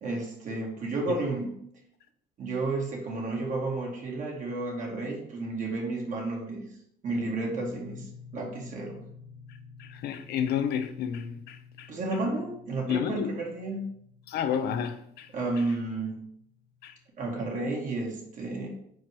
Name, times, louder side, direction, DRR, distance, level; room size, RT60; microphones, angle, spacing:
voice 1, 0.0-1.6 2.4-6.8 7.0-9.1 11.9-13.9 15.3-16.2 17.2-18.7, right 2 dB, 50° right, 2.2 m, -32 dB
sound 1, 7.5-17.1, left 5 dB, ahead, 1.4 m, -51 dB
voice 2, 9.8-11.9 12.9-13.3 14.3-15.3 16.8-16.9, left 8 dB, 70° left, 0.8 m, -31 dB
4.7 x 4.6 x 6.1 m
cardioid pair, 110°, 17 cm